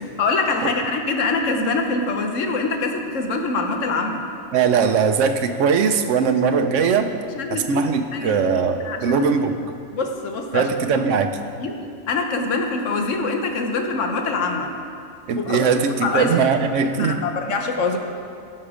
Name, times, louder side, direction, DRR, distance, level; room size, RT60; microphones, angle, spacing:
voice 1, 0.2-4.2 6.6-6.7 7.3-9.3 9.9-10.7 11.6-11.8 12.1-14.7 15.4-15.6 16.0-16.3 17.0-18.0, left 3 dB, 90° left, 4 dB, 1.3 m, -24 dB
voice 2, 4.5-7.1 7.5-9.6 10.5-11.3 15.3-17.2, right 5 dB, 85° right, 7 dB, 1.0 m, -20 dB
16.0 x 5.8 x 5.0 m, 2.4 s
omnidirectional pair, 1.3 m